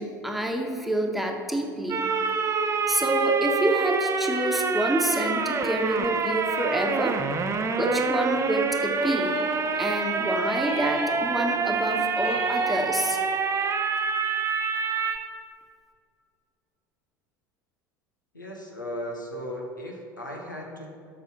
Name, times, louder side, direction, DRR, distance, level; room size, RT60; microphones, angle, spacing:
voice 1, 0.0-2.1 2.9-7.2 7.8-9.4 9.8-13.2, right 1 dB, ahead, 1 dB, 1.3 m, -27 dB
sound 1, 1.9-15.2, right 4 dB, 30° right, 0.9 m, -26 dB
sound 2, 9.0-10.0 10.6-11.6 12.2-13.4, left 3 dB, 65° left, 1.9 m, -39 dB
voice 2, 18.3-20.9, equal, 85° left, 0 dB, 1.3 m, -36 dB
13.0 x 6.2 x 4.2 m, 2.4 s
figure-of-eight pair, 70°, 10 cm